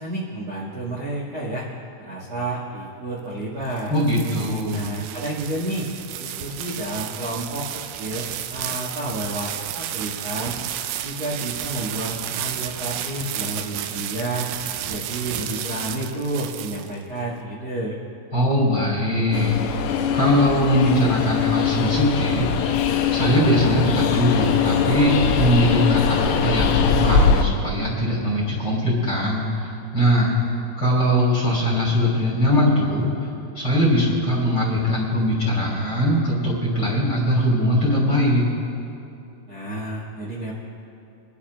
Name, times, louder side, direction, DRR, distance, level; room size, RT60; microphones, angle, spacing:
voice 1, 0.0-1.7 2.0-4.0 4.7-5.9 6.2-10.6 11.0-14.5 14.8-17.9 39.5-40.5, right 1 dB, 70° right, -6 dB, 1.2 m, -30 dB
sound 1, 3.4-17.2, right 11 dB, 85° right, 2.7 m, -32 dB
voice 2, 3.9-4.8 18.3-19.5 20.1-22.5 23.1-30.3 30.8-33.3 33.5-38.5, equal, 30° left, -4 dB, 3.0 m, -21 dB
Train, 19.3-27.4, left 6 dB, 85° left, 3.1 m, -21 dB
29.0 x 11.5 x 2.4 m, 2.7 s
omnidirectional pair, 5.9 m